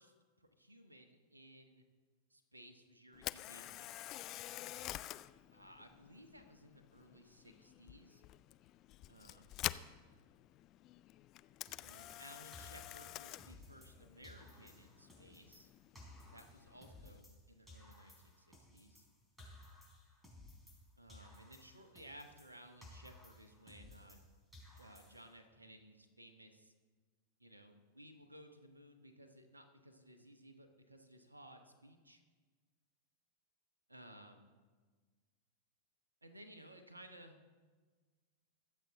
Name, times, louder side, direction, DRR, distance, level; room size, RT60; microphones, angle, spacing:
voice 1, 0.0-1.8 2.3-4.0 5.5-8.2 9.1-9.5 11.8-15.7 16.3-19.1 21.0-24.2 24.8-26.7 27.4-32.2 33.9-34.4 36.2-37.4, right 1 dB, 80° right, 7 dB, 1.2 m, -58 dB
Camera, 3.1-17.2, left 15 dB, 35° left, 0.4 m, -48 dB
sound 1, 11.7-14.0 14.2-17.4 17.7-20.8 21.1-24.3 24.5-25.4, left 1 dB, 5° right, 3.8 m, -58 dB
23.0 x 7.7 x 3.7 m, 1.4 s
figure-of-eight pair, 90°, 0 cm